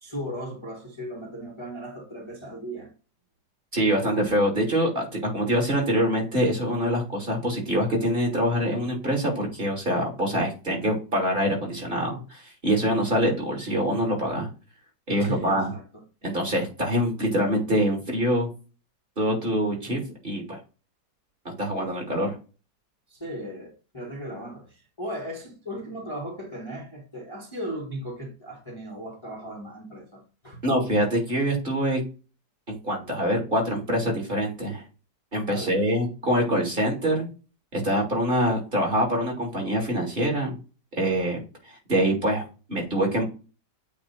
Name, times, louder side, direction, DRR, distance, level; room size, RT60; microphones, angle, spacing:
voice 1, 0.0-2.9 15.2-16.0 23.1-30.6 35.5-35.8, equal, 15° left, 1.5 m, -37 dB
voice 2, 3.7-14.5 15.1-15.7 16.2-18.5 19.2-20.6 21.6-22.3 30.6-32.0 32.7-34.8 35.3-37.3 37.7-40.5 40.9-41.4 41.9-42.4 42.7-43.2, equal, 30° right, 2.6 m, -25 dB
8.6 x 3.0 x 4.2 m
omnidirectional pair, 1.9 m